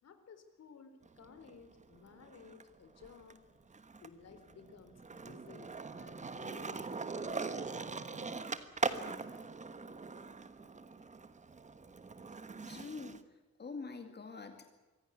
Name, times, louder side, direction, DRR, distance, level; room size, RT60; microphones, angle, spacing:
voice 1, 0.0-3.4 3.7-8.6, left 5 dB, 60° left, 9 dB, 3.8 m, -57 dB
Skateboard, 1.0-2.6 3.0-13.2, right 4 dB, 25° right, 1.3 m, -42 dB
voice 2, 12.7-13.2 13.6-14.7, left 4 dB, 35° left, 6 dB, 2.3 m, -45 dB
24.5 x 16.5 x 9.8 m, 1.2 s
wide cardioid pair, 160°, 29 cm